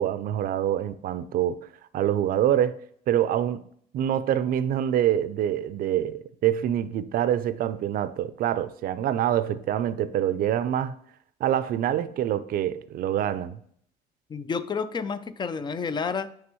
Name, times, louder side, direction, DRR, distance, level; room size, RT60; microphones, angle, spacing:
voice 1, 0.0-1.7 1.9-2.8 3.1-3.6 3.9-10.9 11.4-13.6, right 11 dB, 60° right, 0.5 m, -25 dB
voice 2, 14.3-16.3, left 5 dB, 25° left, 0.4 m, -30 dB
9.5 x 3.5 x 3.0 m
cardioid pair, 110°, 17 cm